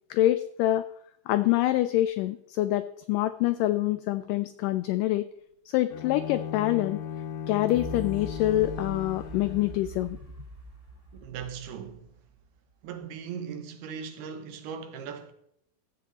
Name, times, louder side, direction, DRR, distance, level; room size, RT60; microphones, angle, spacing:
voice 1, 0.1-0.9 1.3-5.3 5.7-7.0 7.5-10.2, left 15 dB, 90° left, 1.9 m, -26 dB
Bowed string instrument, 5.9-10.0, left 8 dB, 75° left, 2.3 m, -37 dB
sound 1, 7.7-12.6 13.0-13.1, right 3 dB, 25° right, 1.4 m, -43 dB
voice 2, 11.2-12.1 12.8-15.3, right 7 dB, 90° right, 3.0 m, -38 dB
15.0 x 7.5 x 4.1 m
omnidirectional pair, 4.3 m